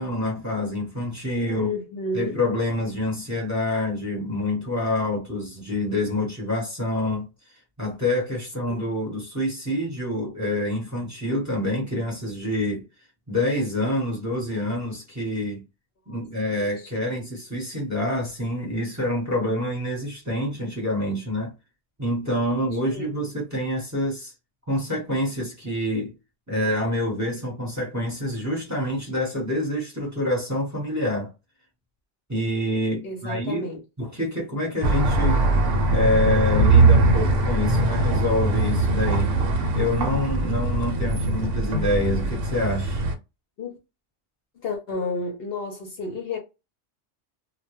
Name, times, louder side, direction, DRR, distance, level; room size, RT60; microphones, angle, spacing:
voice 1, 0.0-1.8 2.1-7.3 7.8-12.8 13.3-15.6 16.1-21.5 22.0-24.3 24.7-26.1 26.5-31.3 32.3-33.7 34.0-35.4 35.9-39.3 39.7-43.0, left 1 dB, 15° right, 0.8 m, -27 dB
voice 2, 1.6-2.4 16.1-16.2 16.8-17.1 22.8-23.1 33.0-33.8 41.1-41.5 43.6-43.8 44.6-46.4, left 2 dB, 60° left, 0.7 m, -31 dB
sound 1, 34.8-43.1, right 2 dB, 80° right, 0.9 m, -21 dB
2.2 x 2.1 x 3.0 m
omnidirectional pair, 1.3 m